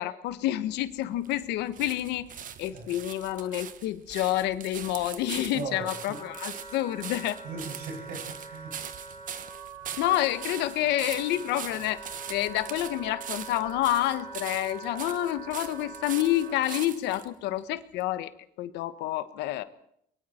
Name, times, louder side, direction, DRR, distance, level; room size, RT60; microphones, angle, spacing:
voice 1, 0.0-2.3 2.6-7.4 10.0-18.3 18.6-19.6, left 14 dB, 90° left, 12 dB, 1.4 m, -29 dB
sound 1, 0.7-17.3 18.0-18.1, right 9 dB, 50° right, 1.5 m, -42 dB
Wind instrument woodwind instrument, 5.4-16.8, right 4 dB, 15° right, 5.0 m, -44 dB
voice 2, 5.5-6.2 7.4-8.8, right 3 dB, 85° right, 2 dB, 7.2 m, -38 dB
29.5 x 23.0 x 4.5 m, 0.71 s
cardioid pair, 110°, 17 cm